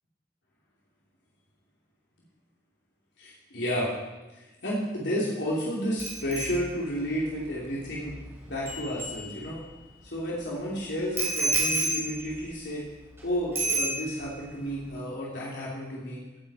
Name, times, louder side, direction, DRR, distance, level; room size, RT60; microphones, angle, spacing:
voice 1, 3.2-3.9 4.4-8.2 8.4-9.6 10.0-12.8 13.2-16.2, equal, 85° left, -6 dB, 3.2 m, -31 dB
Bicycle bell, 6.0-9.8 11.2-13.2 13.5-14.4 14.7-15.0, right 2 dB, 15° right, 3.0 m, -32 dB
17.0 x 10.0 x 4.4 m, 1.1 s
head